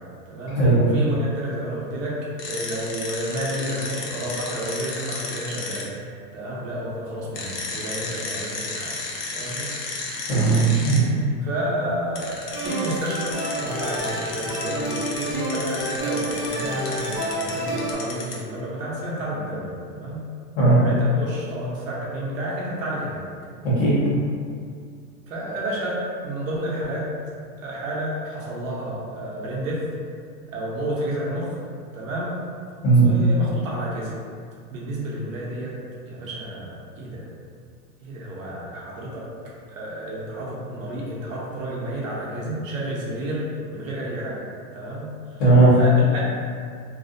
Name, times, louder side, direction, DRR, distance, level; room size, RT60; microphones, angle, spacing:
voice 1, 0.3-0.6 0.9-5.9 6.3-8.9 9.3-9.7 11.4-20.3 20.8-23.2 25.3-27.1 27.6-29.8 30.5-31.6 31.9-32.4 33.0-34.1 34.7-35.7 36.1-37.3 38.0-39.2 39.7-43.4 43.7-44.4 44.7-45.4 45.7-46.2, right 1 dB, 60° right, -5 dB, 0.6 m, -30 dB
sound 1, 2.4-5.8 7.3-11.0 12.2-18.4, left 3 dB, 85° left, 0.7 m, -33 dB
voice 2, 10.3-11.0 20.5-20.8 23.6-23.9 32.8-33.1 42.4-42.5 45.4-45.7, right 3 dB, 45° left, -9 dB, 1.1 m, -17 dB
sound 2, 12.5-17.9, right 1 dB, 10° left, 0.7 m, -29 dB
2.6 x 2.1 x 2.5 m, 2.2 s
supercardioid pair, 175°, 47 cm